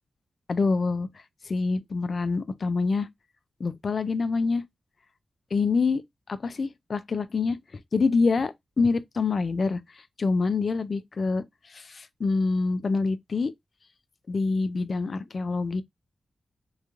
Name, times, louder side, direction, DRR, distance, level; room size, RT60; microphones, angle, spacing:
voice 1, 0.5-1.1 1.4-3.1 3.6-4.6 5.5-6.0 6.3-7.6 7.9-9.8 10.2-13.5 14.3-15.8, left 4 dB, 50° left, 0.3 m, -26 dB
3.0 x 2.3 x 2.4 m
wide cardioid pair, 115°, 0 cm